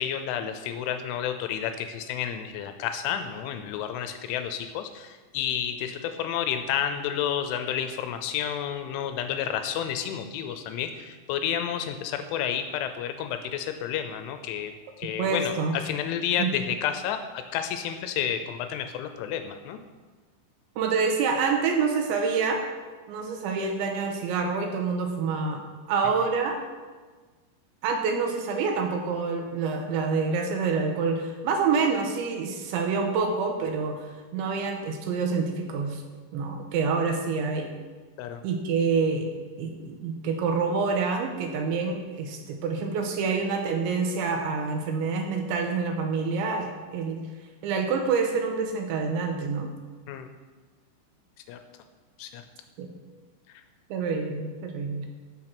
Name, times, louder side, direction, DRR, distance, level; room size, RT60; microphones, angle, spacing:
voice 1, 0.0-19.8 38.2-38.4 50.1-50.3 51.5-51.6 52.2-52.4 53.5-53.6, left 9 dB, 80° left, 8 dB, 2.9 m, -30 dB
voice 2, 15.2-15.8 16.4-16.5 20.8-22.6 23.1-26.6 27.8-36.0 36.3-37.7 38.4-39.3 39.6-47.2 47.6-49.7 52.8-52.9 53.9-55.1, right 5 dB, 80° right, 4 dB, 2.9 m, -27 dB
15.0 x 6.3 x 6.0 m, 1.4 s
omnidirectional pair, 6.0 m